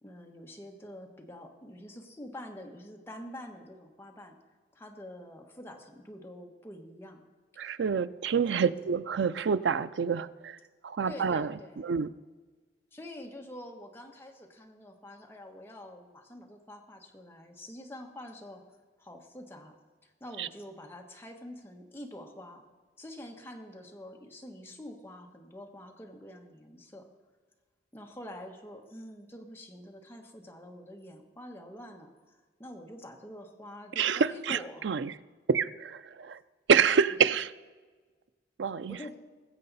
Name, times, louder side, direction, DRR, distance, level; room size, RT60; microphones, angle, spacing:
voice 1, 0.0-4.4 4.7-7.2 7.5-7.7 8.6-8.8 11.1-12.0 12.9-18.6 19.0-19.8 20.0-22.7 23.0-27.1 27.9-34.9 38.9-39.1, left 1 dB, 15° left, 1.4 m, -46 dB
voice 2, 7.6-10.6 10.8-11.5 11.8-12.1 20.4-20.5 34.0-34.6 34.8-35.1 35.5-36.4 36.7-37.5 38.6-39.0, right 6 dB, 85° right, 0.4 m, -27 dB
20.0 x 7.6 x 4.1 m
head